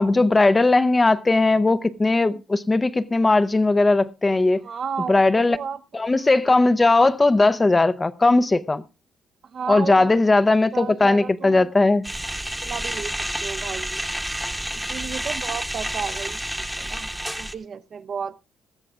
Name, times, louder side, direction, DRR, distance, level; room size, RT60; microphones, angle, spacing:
voice 1, 0.0-4.6 5.1-5.6 5.9-8.8 9.7-12.1, left 2 dB, 20° left, 0.5 m, -18 dB
voice 2, 4.6-5.2 5.5-6.0 9.4-10.1 10.7-11.7 12.6-14.0 14.7-17.1 17.4-18.4, right 6 dB, 55° right, 0.6 m, -33 dB
sound 1, 12.0-17.5, right 1 dB, 5° right, 0.9 m, -29 dB
18.5 x 14.0 x 2.4 m
cardioid pair, 90°, 0 cm